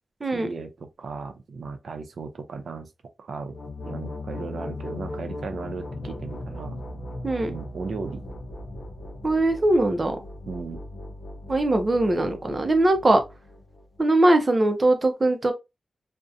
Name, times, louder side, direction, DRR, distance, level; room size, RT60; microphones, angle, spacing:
voice 1, 0.3-2.9 3.2-3.5 3.8-6.8 7.5-8.2 10.5-10.8, right 4 dB, 85° right, 0.5 m, -36 dB
sound 1, 3.4-14.0, left 2 dB, 75° left, 0.5 m, -38 dB
voice 2, 9.2-10.2 11.5-13.2 14.0-15.5, right 2 dB, 30° right, 0.5 m, -21 dB
2.7 x 2.1 x 2.4 m
wide cardioid pair, 160°, 0 cm